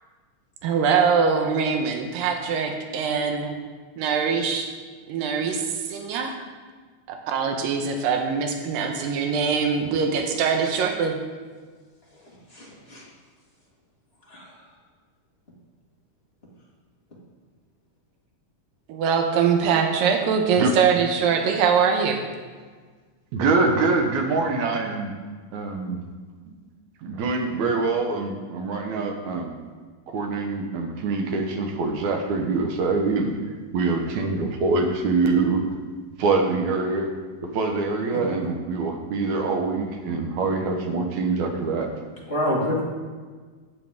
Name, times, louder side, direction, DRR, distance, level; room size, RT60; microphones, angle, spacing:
voice 1, 0.6-3.5 4.0-4.7 5.1-6.4 7.1-11.2 18.9-22.2, right 6 dB, 90° right, 4 dB, 2.6 m, -23 dB
voice 2, 12.5-13.0 14.3-14.6 38.1-38.2 42.2-42.8, left 1 dB, 25° left, -5 dB, 1.3 m, -27 dB
voice 3, 23.3-25.1 25.5-26.0 27.0-29.5 30.1-33.3 33.7-35.6 36.2-37.2 37.5-41.9, right 3 dB, 65° right, 3 dB, 2.1 m, -24 dB
14.5 x 7.6 x 3.6 m, 1.5 s
omnidirectional pair, 4.0 m